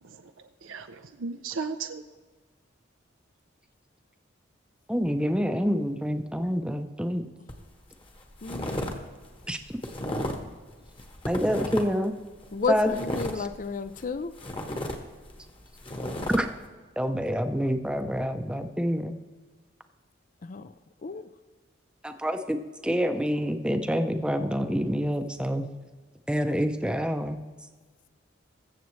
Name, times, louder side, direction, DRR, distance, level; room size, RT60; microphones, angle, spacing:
voice 1, 0.0-2.0, right 5 dB, 85° right, 0.5 m, -36 dB
voice 2, 4.9-7.2 9.5-9.6 11.3-12.1 12.7-12.9 16.3-16.5 17.0-19.2 22.0-22.6 22.8-25.7 26.3-27.4, equal, 5° right, 0.6 m, -27 dB
sound 1, 7.5-7.7 8.1-9.0 9.2-10.5 10.9-12.1 12.4-14.1 14.4-16.4, left 1 dB, 25° left, 1.2 m, -33 dB
voice 3, 8.4-8.9 12.5-14.3 20.4-20.7 21.0-21.3, left 5 dB, 40° left, 0.4 m, -32 dB
22.0 x 7.4 x 3.2 m
head